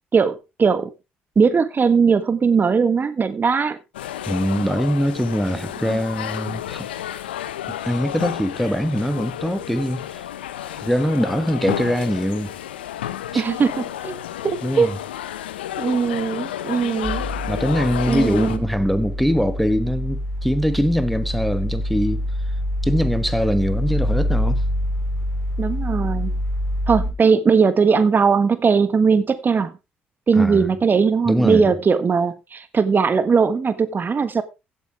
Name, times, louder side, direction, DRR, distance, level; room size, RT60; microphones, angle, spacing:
voice 1, 0.1-0.9 1.3-3.8 5.9-6.0 13.3-14.2 14.4-14.9 15.8-17.2 18.1-18.6 25.6-26.3 26.9-29.7 30.3-34.4, right 5 dB, 35° right, 1.5 m, -19 dB
sound 1, 3.9-18.6, left 12 dB, 85° left, 0.8 m, -31 dB
voice 2, 4.3-6.9 7.9-10.3 10.7-12.5 13.3-13.4 14.6-15.0 17.5-22.2 22.8-24.6 30.3-30.7 31.3-31.7, equal, ahead, 1.2 m, -22 dB
sound 2, 17.0-27.1, equal, 20° left, 5.3 m, -25 dB
16.0 x 8.4 x 3.3 m
hypercardioid pair, 55°, 5 cm